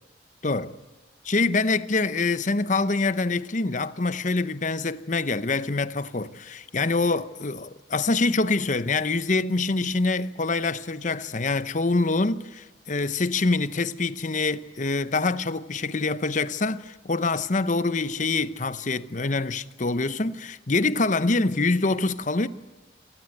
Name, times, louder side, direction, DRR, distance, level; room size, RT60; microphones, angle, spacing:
voice 1, 0.4-0.7 1.2-22.5, left 3 dB, 45° left, 0.9 m, -25 dB
26.5 x 19.5 x 8.0 m
head